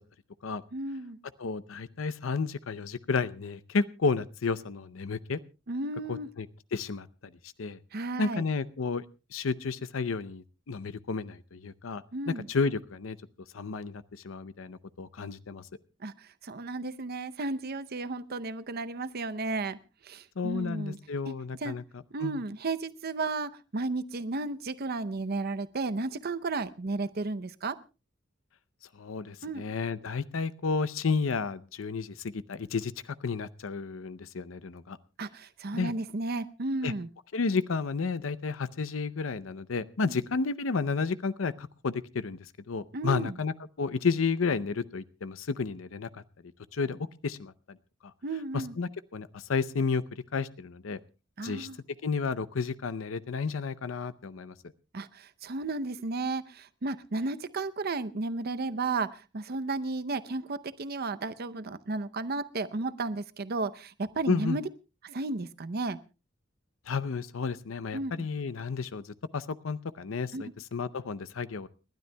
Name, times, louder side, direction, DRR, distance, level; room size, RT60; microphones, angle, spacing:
voice 1, 0.7-1.2 5.7-6.3 7.9-8.4 12.1-12.5 16.0-19.8 20.0-21.0 21.3-21.4 21.6-21.7 22.1-27.8 29.4-29.6 35.2-37.1 40.0-40.2 42.9-43.4 48.2-48.7 51.4-51.8 54.9-64.6 65.0-66.0 67.9-68.3 70.3-70.4, right 3 dB, 50° right, 12 dB, 0.7 m, -33 dB
voice 2, 1.4-5.4 6.1-6.5 6.7-7.1 7.6-7.8 8.2-9.0 9.3-13.2 13.5-15.7 20.4-21.8 22.2-22.4 29.0-35.0 35.7-35.9 36.8-36.9 37.3-46.2 46.7-47.8 48.5-51.0 51.4-51.7 52.0-54.5 64.3-64.6 66.9-71.7, left 4 dB, 85° left, 15 dB, 0.6 m, -32 dB
30.0 x 12.5 x 2.2 m, 0.30 s
head